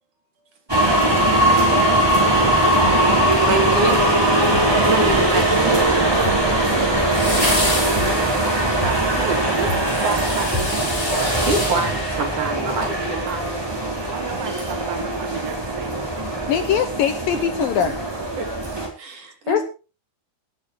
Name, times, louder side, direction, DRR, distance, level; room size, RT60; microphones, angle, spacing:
sound 1, 0.7-18.9, right 1 dB, 5° right, 4.4 m, -20 dB
sound 2, 2.8-3.2 3.7-4.1 4.5-4.9 5.4-5.7 6.2-6.7 7.1-7.5 7.9-8.4 8.8-9.2 9.7-10.1 10.5-10.9, left 5 dB, 40° left, 6.5 m, -33 dB
voice 1, 3.5-4.2 4.7-5.8 11.5-13.8 16.4-16.5 18.4-18.5 19.0-19.6, right 2 dB, 45° right, 3 dB, 5.0 m, -26 dB
sound 3, 3.7-4.6 7.1-12.9 13.3-13.4, left 1 dB, 25° left, 6.4 m, -29 dB
voice 2, 8.0-9.7 10.0-11.0 14.0-16.1, right 8 dB, 80° right, 9 dB, 3.9 m, -32 dB
voice 3, 16.5-18.0 19.5-19.6, left 9 dB, 70° left, 9 dB, 2.2 m, -21 dB
18.0 x 9.7 x 4.8 m, 0.34 s
omnidirectional pair, 5.1 m